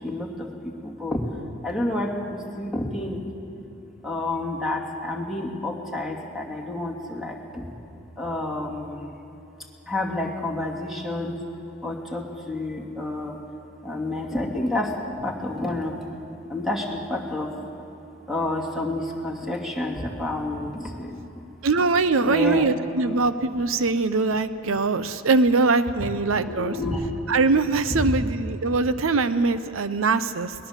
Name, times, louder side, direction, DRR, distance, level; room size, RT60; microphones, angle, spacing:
voice 1, 0.6-1.2 1.6-3.2 4.0-7.7 8.2-9.1 9.9-11.4 11.8-13.4 13.8-16.0 16.5-17.5 18.3-21.2 22.2-22.7 26.3-27.1 27.9-28.0, left 2 dB, ahead, 0 dB, 2.6 m, -29 dB
voice 2, 21.6-26.8 27.3-30.5, right 3 dB, 80° right, 12 dB, 0.7 m, -22 dB
22.0 x 20.5 x 7.4 m, 2.9 s
head